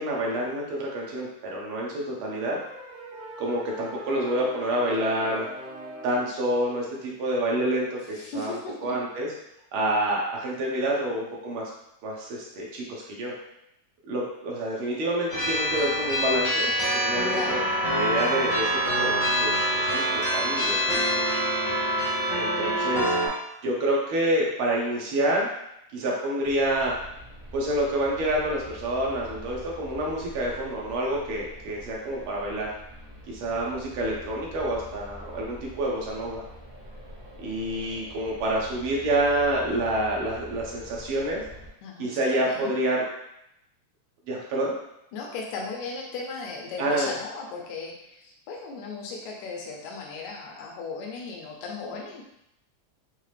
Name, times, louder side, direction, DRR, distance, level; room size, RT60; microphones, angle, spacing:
voice 1, 0.0-2.6 3.4-5.5 6.0-9.3 9.7-11.7 12.0-13.3 14.1-16.7 17.0-17.6 17.9-18.7 19.0-21.0 22.3-23.1 23.6-25.5 25.9-26.9 27.5-32.7 33.3-36.4 37.4-41.4 42.0-43.1 44.3-44.7 46.8-47.1, right 1 dB, 75° right, -3 dB, 1.2 m, -28 dB
sound 1, 2.4-6.4, right 1 dB, 50° right, 0.8 m, -41 dB
voice 2, 8.1-9.0 17.3-17.7 41.8-42.7 45.1-52.2, left 4 dB, 80° left, -2 dB, 2.0 m, -36 dB
sound 2, 15.3-23.3, right 1 dB, 60° left, 0.8 m, -25 dB
sound 3, 26.4-41.7, equal, 30° left, 0.4 m, -45 dB
5.5 x 2.0 x 3.2 m, 0.81 s
omnidirectional pair, 3.3 m